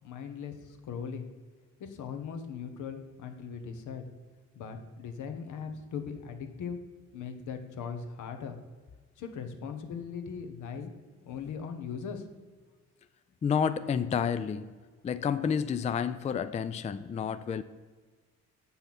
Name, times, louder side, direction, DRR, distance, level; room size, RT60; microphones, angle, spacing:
voice 1, 0.0-1.3 1.8-4.0 4.5-6.8 7.1-8.6 9.2-10.9 11.2-12.3, left 6 dB, 80° left, 1.1 m, -39 dB
voice 2, 13.4-14.8 15.0-17.6, left 7 dB, 25° left, 0.3 m, -30 dB
7.3 x 5.6 x 6.0 m
cardioid pair, 90°, 30 cm